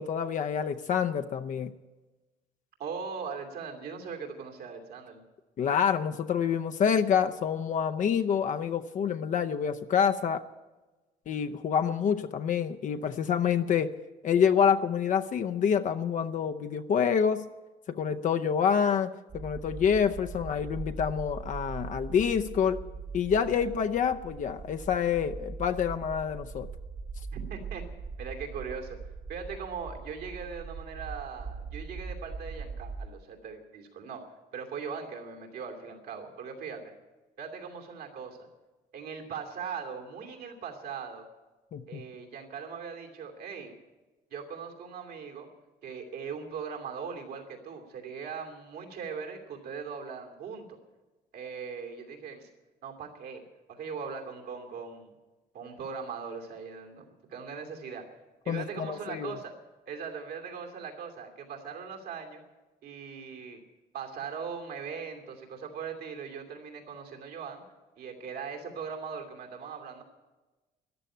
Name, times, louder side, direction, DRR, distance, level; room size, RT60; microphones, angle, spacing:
voice 1, 0.0-1.7 5.6-10.4 11.3-13.9 14.2-17.5 17.9-22.8 23.1-26.7 41.7-42.1 58.5-59.3, left 7 dB, 50° left, 7 dB, 0.7 m, -27 dB
voice 2, 2.8-5.2 27.3-27.8 28.2-29.0 29.3-34.2 34.5-36.8 37.4-38.5 38.9-41.2 41.9-43.7 44.3-45.5 45.8-50.8 51.3-52.5 52.8-55.1 55.5-58.0 58.4-59.5 59.9-62.4 62.8-63.6 63.9-67.6 68.0-70.0, right 6 dB, 70° right, 2 dB, 2.7 m, -40 dB
sound 1, 19.3-33.1, right 4 dB, 45° right, 1.2 m, -41 dB
14.0 x 11.5 x 9.1 m, 1.2 s
cardioid pair, 110°, 17 cm